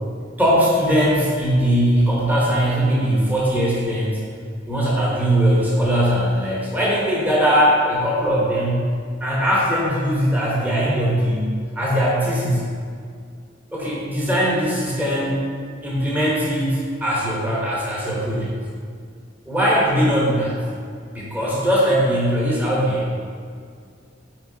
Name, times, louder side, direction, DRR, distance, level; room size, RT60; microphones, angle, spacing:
voice 1, 0.4-4.2 4.7-12.7 13.7-15.4 15.8-18.5 19.5-20.6 21.1-23.4, equal, 10° right, -6 dB, 1.1 m, -20 dB
5.9 x 4.3 x 3.9 m, 2.1 s
head